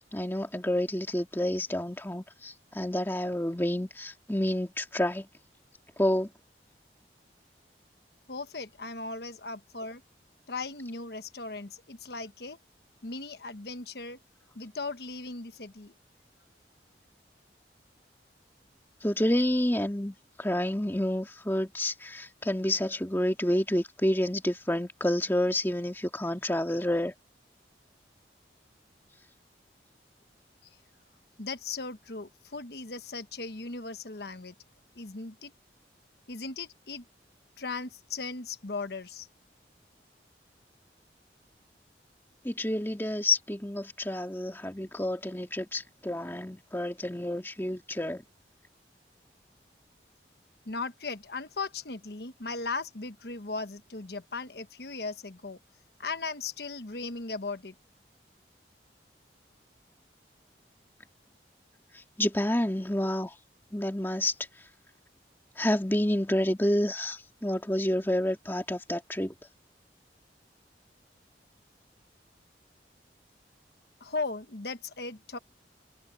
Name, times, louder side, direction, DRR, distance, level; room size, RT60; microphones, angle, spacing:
voice 1, 0.1-5.3 6.0-6.3 19.0-27.1 42.4-48.2 62.2-63.3 63.7-64.3 65.6-69.3, left 1 dB, 10° left, 2.1 m, -29 dB
voice 2, 8.3-10.0 10.5-12.6 13.0-14.2 14.5-15.9 31.4-34.5 34.9-35.5 36.3-37.0 37.6-39.3 50.7-55.6 56.0-57.7 74.0-75.4, left 3 dB, 65° left, 1.2 m, -37 dB
head